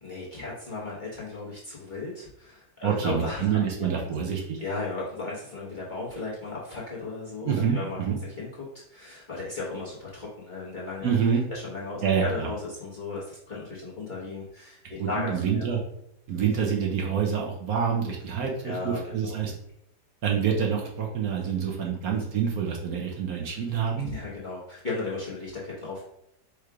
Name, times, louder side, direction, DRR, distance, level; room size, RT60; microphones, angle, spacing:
voice 1, 0.0-4.1 4.6-8.0 8.4-8.5 8.9-11.1 11.5-15.7 18.6-19.4 24.0-26.0, left 3 dB, 35° left, -6 dB, 1.0 m, -35 dB
voice 2, 2.8-4.6 7.4-8.2 11.0-11.4 12.0-12.5 15.0-15.8 16.3-19.5 20.2-24.1, right 7 dB, 65° right, 0 dB, 1.1 m, -27 dB
4.7 x 2.4 x 4.7 m, 0.77 s
omnidirectional pair, 1.8 m